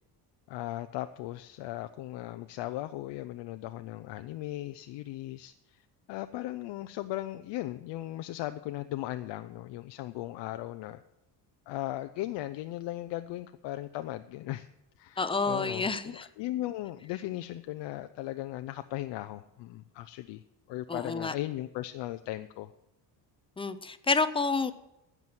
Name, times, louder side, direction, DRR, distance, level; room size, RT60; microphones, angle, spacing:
voice 1, 0.5-11.0 11.7-14.7 15.0-20.4 20.7-22.7, left 15 dB, 75° left, 9 dB, 0.6 m, -37 dB
voice 2, 15.2-16.3 20.9-21.3 23.6-24.7, left 4 dB, 15° left, 13 dB, 0.5 m, -29 dB
15.5 x 6.1 x 7.7 m, 0.92 s
cardioid pair, 150°, 44 cm